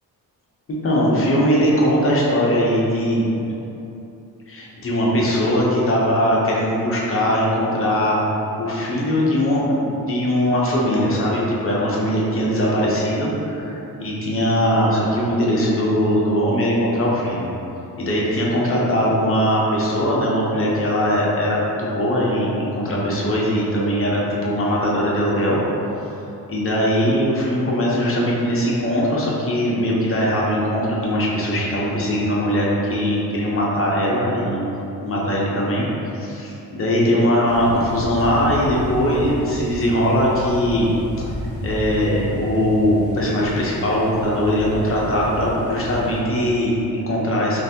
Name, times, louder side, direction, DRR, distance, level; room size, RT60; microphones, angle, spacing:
voice 1, 0.7-3.3 4.5-8.2 8.6-17.4 18.0-25.6 26.5-34.6 35.0-35.9 36.1-40.9 41.2-41.3 41.6-47.6, equal, 35° left, -5 dB, 0.7 m, -20 dB
sound 1, 37.5-46.2, equal, 40° right, 0.7 m, -32 dB
3.9 x 3.2 x 2.8 m, 2.9 s
cardioid pair, 135°, 37 cm